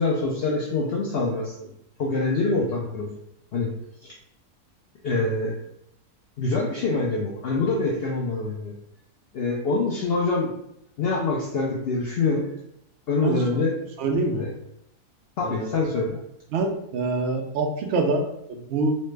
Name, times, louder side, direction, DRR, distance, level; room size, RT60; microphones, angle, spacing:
voice 1, 0.0-1.7 2.0-3.1 3.5-3.7 4.0-4.2 5.0-5.6 6.4-8.7 9.3-10.5 11.0-12.5 13.1-13.8 14.4-14.5 15.4-16.2, left 3 dB, 80° left, -3 dB, 0.5 m, -25 dB
voice 2, 14.0-14.4 15.4-15.7 16.5-19.0, right 3 dB, 75° right, 2 dB, 0.6 m, -25 dB
3.1 x 2.1 x 3.2 m, 0.77 s
omnidirectional pair, 1.6 m